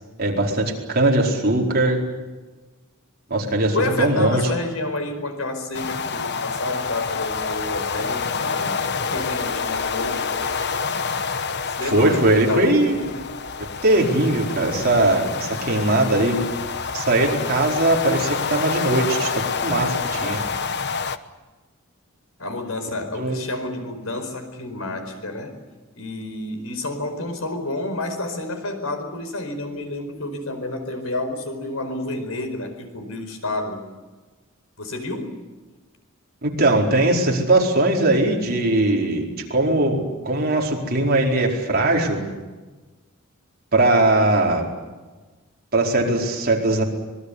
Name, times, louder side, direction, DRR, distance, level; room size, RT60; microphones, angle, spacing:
voice 1, 0.2-2.0 3.3-4.5 11.8-13.0 13.8-16.4 16.9-19.3 19.6-20.4 23.2-23.4 36.4-39.2 39.5-42.2 43.7-44.6 45.7-46.8, right 2 dB, 50° right, 0 dB, 4.6 m, -20 dB
voice 2, 3.7-10.3 11.7-13.3 22.4-25.6 25.9-33.8 34.8-35.4, left 2 dB, 80° left, 7 dB, 4.7 m, -29 dB
sound 1, 5.7-21.2, left 5 dB, 55° left, 1.1 m, -27 dB
25.5 x 21.0 x 8.2 m, 1.3 s
head